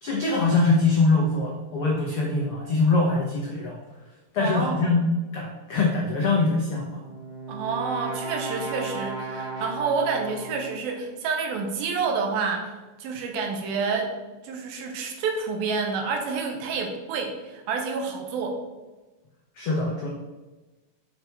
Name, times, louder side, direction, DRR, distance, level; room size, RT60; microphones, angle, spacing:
voice 1, 0.0-3.8 4.3-5.0 5.3-7.0 19.6-20.1, left 3 dB, 85° left, -2 dB, 1.2 m, -23 dB
voice 2, 4.4-5.0 7.5-12.7 13.0-14.1 14.4-18.6, right 5 dB, 80° right, 3 dB, 2.8 m, -28 dB
Brass instrument, 6.8-10.9, right 2 dB, 25° right, 2.8 m, -35 dB
6.9 x 5.5 x 4.6 m, 1.1 s
omnidirectional pair, 4.2 m